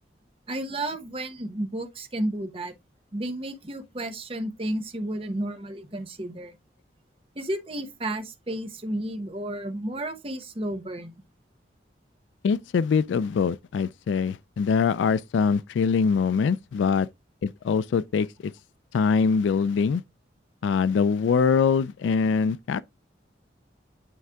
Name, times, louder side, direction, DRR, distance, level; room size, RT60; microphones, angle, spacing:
voice 1, 0.5-2.7 3.1-6.5 7.4-11.2, right 1 dB, 30° right, 1.0 m, -32 dB
voice 2, 12.4-17.1 17.4-18.5 18.9-20.0 20.6-22.8, left 5 dB, 85° left, 0.3 m, -23 dB
9.2 x 3.3 x 3.5 m
head